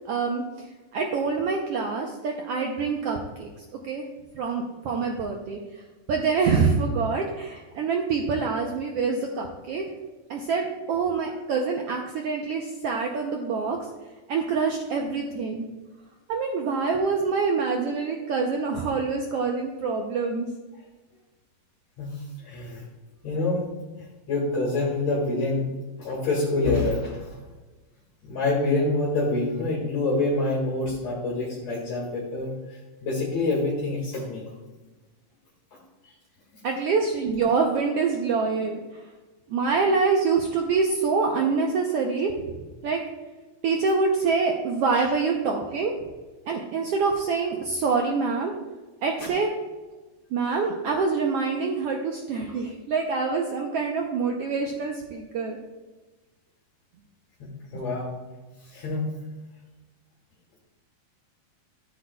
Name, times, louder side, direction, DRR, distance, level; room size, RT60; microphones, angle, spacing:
voice 1, 0.1-0.4 0.9-3.5 3.8-4.0 4.3-5.6 6.1-9.9 10.3-13.8 14.3-15.7 16.3-20.5 36.6-38.8 39.5-42.3 42.8-43.0 43.6-45.9 46.5-48.5 49.0-49.5 50.3-55.6, right 4 dB, 85° right, 1 dB, 1.3 m, -25 dB
voice 2, 22.0-22.8 23.2-23.6 24.3-25.7 26.0-27.4 28.2-34.5 36.0-36.1 36.5-36.6 44.9-45.0 49.2-49.3 57.7-58.1 58.6-59.1, left 2 dB, 60° left, -4 dB, 2.6 m, -26 dB
13.5 x 7.9 x 2.3 m, 1.2 s
omnidirectional pair, 3.6 m